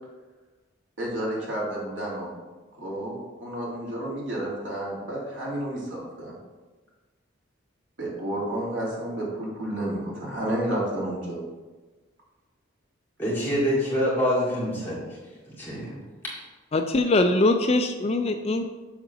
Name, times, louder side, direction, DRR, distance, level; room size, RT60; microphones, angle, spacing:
voice 1, 1.0-2.3 2.8-6.3 8.0-11.4, right 1 dB, 75° right, -5 dB, 2.7 m, -31 dB
voice 2, 13.2-15.0 15.5-15.9 16.2-16.3, equal, 10° left, -7 dB, 2.1 m, -26 dB
voice 3, 16.7-18.7, left 2 dB, 30° left, 7 dB, 0.4 m, -22 dB
7.3 x 4.0 x 6.1 m, 1.3 s
head